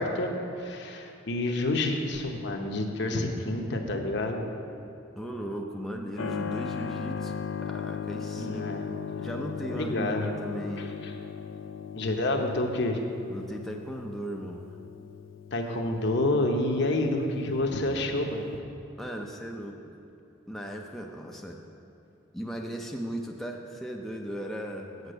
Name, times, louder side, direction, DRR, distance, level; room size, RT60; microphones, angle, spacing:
voice 1, 0.0-4.5 8.4-8.8 9.7-10.3 10.8-11.1 11.9-13.0 15.5-18.5, left 2 dB, 60° left, 3 dB, 0.9 m, -28 dB
voice 2, 5.2-8.7 9.2-11.0 13.3-14.7 19.0-20.0 20.5-21.7 22.3-25.1, right 1 dB, ahead, 0 dB, 0.5 m, -37 dB
Keyboard (musical), 6.2-18.6, left 6 dB, 75° left, 0.4 m, -38 dB
8.1 x 5.9 x 7.7 m, 2.8 s
head